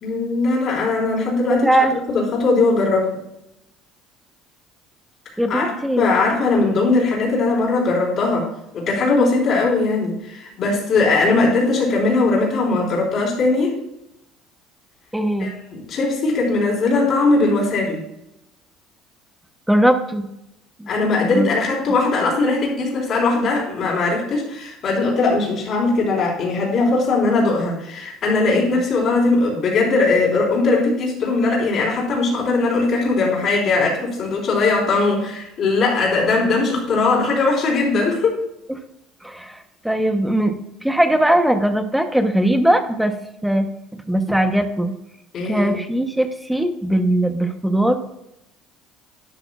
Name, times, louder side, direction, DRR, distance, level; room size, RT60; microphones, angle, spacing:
voice 1, 0.0-1.7 2.1-3.1 5.5-5.7 6.0-8.5 8.7-13.7 15.4-18.0 20.9-38.4 45.3-45.8, left 3 dB, 40° left, -2 dB, 4.0 m, -19 dB
voice 2, 1.4-1.9 5.4-6.1 15.1-15.5 19.7-20.3 20.8-20.9 21.3-21.5 28.5-28.8 39.2-39.6 39.8-40.5 40.8-43.1 43.4-44.9 45.4-48.0, right 1 dB, ahead, 7 dB, 0.9 m, -19 dB
11.5 x 11.5 x 2.4 m, 0.84 s
cardioid pair, 160°, 0 cm